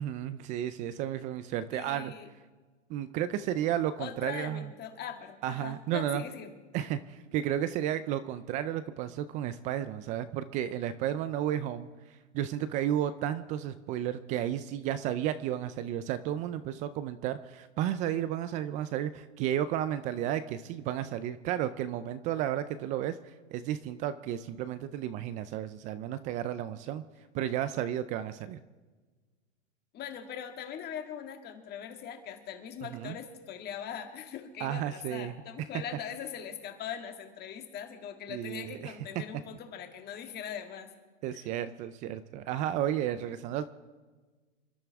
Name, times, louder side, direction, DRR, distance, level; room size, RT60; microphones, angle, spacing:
voice 1, 0.0-2.1 2.9-4.7 5.4-6.2 6.7-27.0 27.3-28.6 32.9-33.2 34.6-35.3 38.3-38.9 41.2-43.7, right 11 dB, 20° right, 13 dB, 0.4 m, -33 dB
voice 2, 1.7-2.3 4.0-6.5 29.9-40.9 41.3-41.5, left 8 dB, 25° left, 5 dB, 1.8 m, -41 dB
28.0 x 12.5 x 3.5 m, 1.4 s
hypercardioid pair, 130°, 36 cm